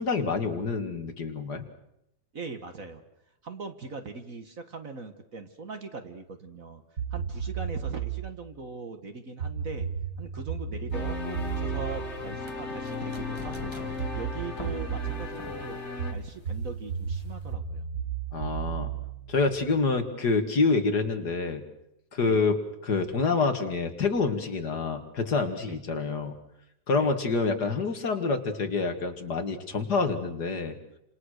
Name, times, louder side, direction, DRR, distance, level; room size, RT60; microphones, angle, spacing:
voice 1, 0.0-1.6 18.3-18.9 19.3-21.6 22.1-26.3 26.9-30.8, left 4 dB, 55° left, 6 dB, 2.4 m, -27 dB
voice 2, 2.3-3.0 3.4-6.8 7.1-9.9 10.2-17.9 22.2-22.4 25.7-25.8 27.0-27.1, right 4 dB, 45° right, 7 dB, 1.8 m, -40 dB
sound 1, 7.0-8.3 9.4-13.1 14.0-15.2 16.0-19.9, right 7 dB, 60° right, 6.9 m, -34 dB
sound 2, 10.9-16.1, left 4 dB, 35° left, 2.1 m, -36 dB
sound 3, 10.9-17.5, left 1 dB, 15° left, 1.7 m, -46 dB
28.5 x 27.0 x 6.5 m, 0.83 s
omnidirectional pair, 2.1 m